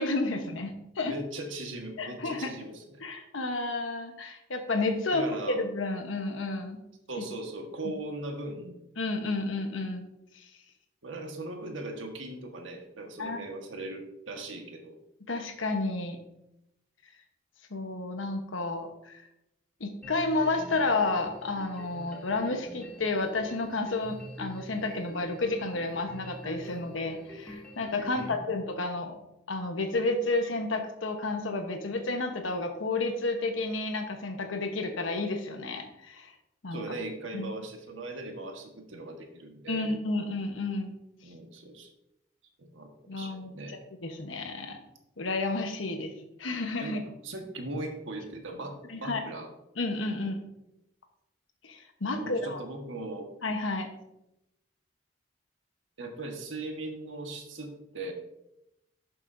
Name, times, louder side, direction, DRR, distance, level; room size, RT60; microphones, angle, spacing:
voice 1, 0.0-1.1 2.0-2.5 3.0-6.8 7.2-7.3 9.0-10.1 10.3-10.4 13.2-13.4 15.3-16.2 17.7-19.2 19.8-29.2 29.5-36.3 36.6-36.8 37.3-37.5 39.7-40.9 43.1-44.8 45.2-46.1 46.4-47.0 48.9-49.2 49.8-50.4 51.6-52.6 53.4-53.9, left 2 dB, 85° left, 5 dB, 1.1 m, -31 dB
voice 2, 1.0-3.0 5.1-5.6 7.1-8.8 11.0-15.0 28.1-28.4 36.7-39.9 41.2-41.9 42.6-43.8 46.8-49.5 52.1-53.3 56.0-58.1, right 2 dB, 80° right, 3 dB, 1.4 m, -39 dB
sound 1, 20.0-28.3, equal, 5° left, 2.0 m, -45 dB
11.5 x 6.9 x 2.6 m, 0.86 s
head